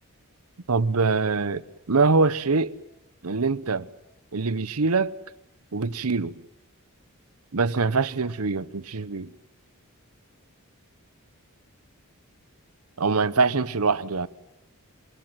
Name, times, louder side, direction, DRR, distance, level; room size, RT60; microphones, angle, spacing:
voice 1, 0.7-1.6 1.9-2.7 3.2-3.9 4.3-5.1 5.7-6.4 7.5-9.3 13.0-14.3, right 4 dB, 75° right, 0.9 m, -23 dB
27.0 x 20.0 x 9.1 m
head